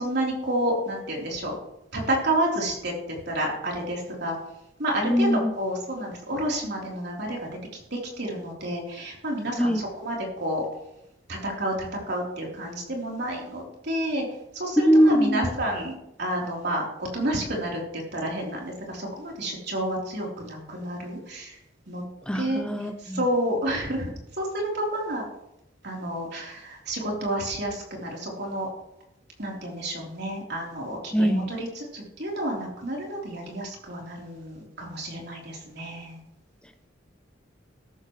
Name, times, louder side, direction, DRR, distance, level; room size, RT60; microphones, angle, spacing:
voice 1, 0.0-1.5 1.9-2.9 3.3-4.4 4.8-5.3 5.6-7.5 7.9-10.6 11.3-14.3 14.5-15.9 16.2-21.6 21.9-22.0 22.3-22.6 23.1-24.1 24.4-25.2 25.8-28.7 29.4-31.7 31.9-36.2, right 1 dB, 55° right, -2 dB, 3.8 m, -30 dB
voice 2, 5.0-5.5 9.6-9.8 14.8-15.5 22.3-23.3 31.1-31.5, equal, 5° left, 7 dB, 0.5 m, -22 dB
13.5 x 13.0 x 3.2 m, 0.85 s
head